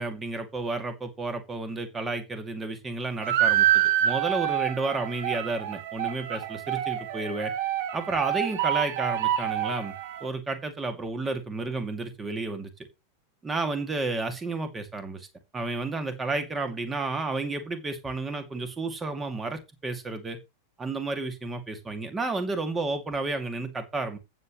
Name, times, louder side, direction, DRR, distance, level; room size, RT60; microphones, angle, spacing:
voice 1, 0.0-7.5 7.9-9.9 10.2-12.7 13.4-15.3 15.5-20.4 20.8-24.2, right 3 dB, 15° right, 8 dB, 2.4 m, -31 dB
sound 1, 3.2-10.3, right 12 dB, 50° right, 2.0 m, -27 dB
14.5 x 7.8 x 3.2 m, 0.25 s
figure-of-eight pair, 90°, 0 cm